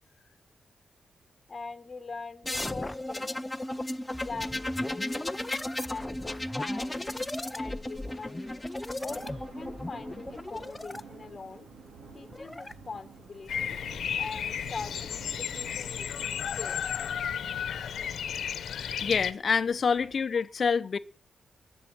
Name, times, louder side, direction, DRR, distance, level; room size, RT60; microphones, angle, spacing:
voice 1, 1.5-3.4 4.2-5.3 5.9-7.1 7.5-8.7 9.0-11.7 12.1-13.8 14.2-16.8, left 4 dB, 25° left, 1.3 m, -42 dB
sound 1, 2.4-11.0 12.1-12.7, left 1 dB, 10° left, 0.6 m, -35 dB
sound 2, 4.5-20.2, right 4 dB, 80° right, 3.4 m, -52 dB
Bird vocalization bird call bird song, 13.5-19.3, left 8 dB, 80° left, 1.0 m, -33 dB
voice 2, 18.6-21.0, left 5 dB, 40° left, 0.7 m, -27 dB
20.5 x 7.1 x 6.3 m
wide cardioid pair, 175°, 0 cm